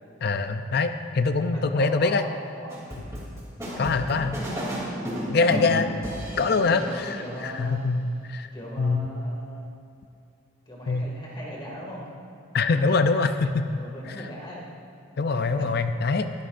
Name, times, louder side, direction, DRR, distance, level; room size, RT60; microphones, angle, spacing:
voice 1, 0.2-2.2 3.8-4.4 5.3-5.9 6.4-7.1 7.4-8.5 8.8-9.1 10.9-11.0 12.5-13.6 15.2-16.3, left 4 dB, 50° left, 9 dB, 0.4 m, -23 dB
voice 2, 1.5-2.8 3.7-5.6 6.3-7.8 8.5-9.8 10.7-12.1 13.7-14.7 15.3-15.8, equal, 25° left, -4 dB, 2.1 m, -39 dB
sound 1, 2.7-7.0, equal, 15° right, 2.9 m, -33 dB
19.5 x 13.0 x 2.6 m, 2.7 s
head